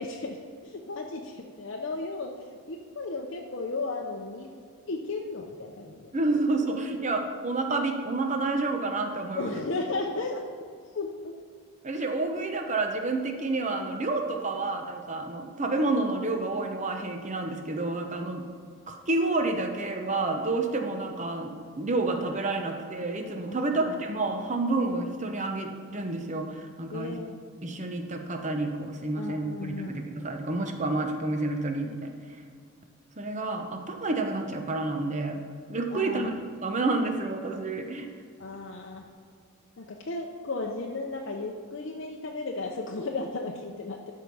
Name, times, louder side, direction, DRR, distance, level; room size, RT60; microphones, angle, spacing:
voice 1, 0.0-4.5 4.9-6.1 9.4-10.4 10.9-11.4 23.5-23.9 26.9-27.3 29.2-30.0 35.9-36.5 38.4-39.1 39.8-44.1, left 3 dB, 55° left, 1 dB, 0.6 m, -35 dB
voice 2, 6.1-9.6 11.8-18.4 18.9-27.2 27.6-32.1 33.2-35.4 35.7-36.3 36.6-38.1, right 2 dB, 35° right, 4 dB, 0.8 m, -29 dB
12.5 x 4.7 x 5.4 m, 2.2 s
head